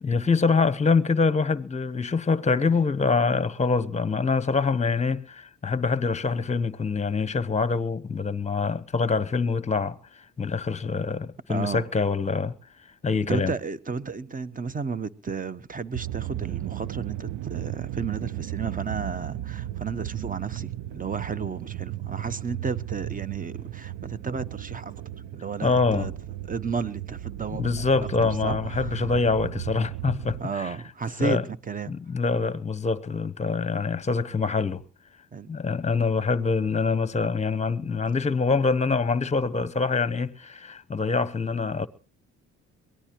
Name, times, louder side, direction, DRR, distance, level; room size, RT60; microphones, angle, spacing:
voice 1, 0.0-10.0 10.4-12.5 13.0-13.5 25.6-26.1 27.6-30.7 31.2-31.4 31.9-34.8 35.5-41.9, left 4 dB, 25° left, 1.0 m, -25 dB
voice 2, 11.5-11.9 13.3-26.1 26.5-27.9 28.2-29.0 30.4-31.9 35.3-35.5, right 5 dB, 25° right, 1.1 m, -33 dB
sound 1, 15.9-30.4, right 14 dB, 85° right, 0.7 m, -35 dB
23.0 x 18.0 x 3.0 m
cardioid pair, 90°, 30 cm